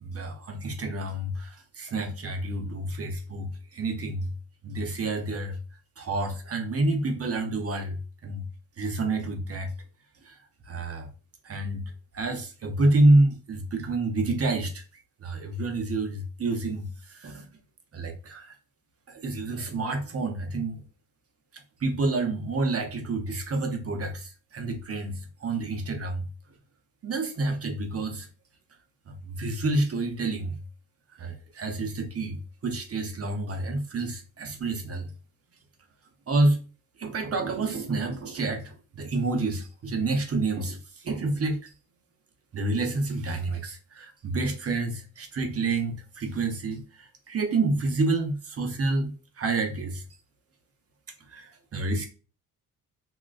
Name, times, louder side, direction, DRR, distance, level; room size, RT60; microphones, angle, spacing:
voice 1, 0.0-4.3 4.6-5.6 6.0-8.5 8.8-9.7 10.2-10.4 10.7-11.1 11.4-11.8 12.1-14.8 15.2-17.5 17.9-18.5 19.1-20.8 21.8-26.3 27.0-28.3 29.1-30.6 31.2-35.1 36.3-36.6 37.0-41.7 42.5-50.0 51.3-52.1, right 2 dB, 40° right, 0.7 m, -28 dB
2.9 x 2.3 x 2.4 m
cardioid pair, 90°, 36 cm